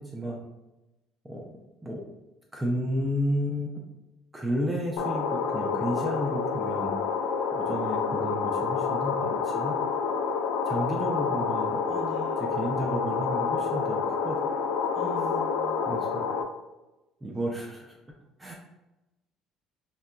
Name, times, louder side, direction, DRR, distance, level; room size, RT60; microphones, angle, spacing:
voice 1, 1.2-2.1 2.5-3.8 4.3-6.9 7.5-9.8 10.7-11.8 12.4-14.4 15.9-16.3 17.2-18.0 18.4-18.5, equal, 10° right, 0 dB, 0.3 m, -32 dB
sound 1, 5.0-16.4, left 5 dB, 85° left, 0.3 m, -28 dB
voice 2, 11.9-12.4 14.9-15.8, equal, 35° left, -2 dB, 0.9 m, -40 dB
3.8 x 2.1 x 2.2 m, 1.0 s
cardioid pair, 150°, 0 cm